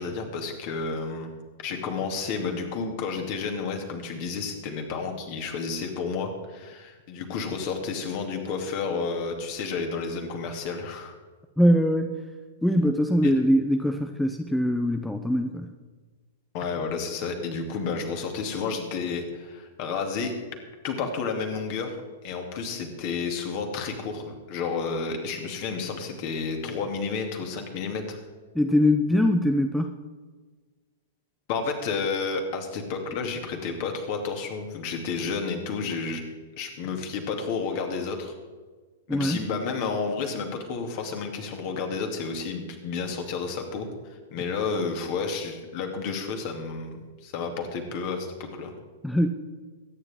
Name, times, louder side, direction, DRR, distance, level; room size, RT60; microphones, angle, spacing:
voice 1, 0.0-1.3 1.6-11.1 13.2-13.4 16.5-20.3 20.8-21.9 22.2-28.2 31.5-36.2 36.6-38.3 39.1-48.7, left 5 dB, 40° left, 3 dB, 2.5 m, -31 dB
voice 2, 11.6-12.2 12.6-15.7 28.5-29.9 39.1-39.4 49.0-49.3, equal, 5° left, 6 dB, 0.7 m, -22 dB
22.5 x 10.0 x 3.6 m, 1.4 s
figure-of-eight pair, 100°, 0 cm